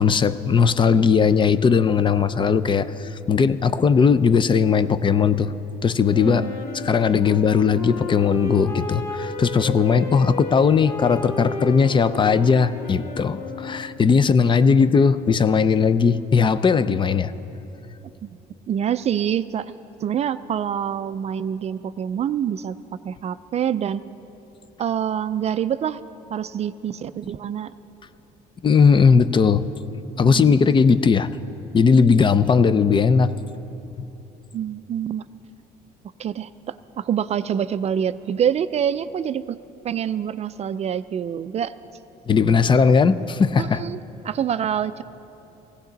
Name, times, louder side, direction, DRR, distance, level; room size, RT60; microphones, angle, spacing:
voice 1, 0.0-5.5 5.8-6.5 6.8-17.3 28.6-29.6 30.2-31.3 31.7-33.3 42.3-43.8, left 5 dB, 30° left, 14 dB, 0.4 m, -18 dB
Wind instrument woodwind instrument, 6.1-14.1, left 3 dB, 65° left, 2.3 m, -33 dB
voice 2, 18.7-19.7 20.0-22.8 23.0-24.0 24.8-26.0 26.3-27.7 30.2-30.8 34.5-35.2 36.2-39.6 39.8-41.7 43.6-44.0 44.2-45.0, right 9 dB, 40° right, 14 dB, 0.4 m, -26 dB
17.5 x 16.0 x 4.0 m, 2.9 s
cardioid pair, 110°, 17 cm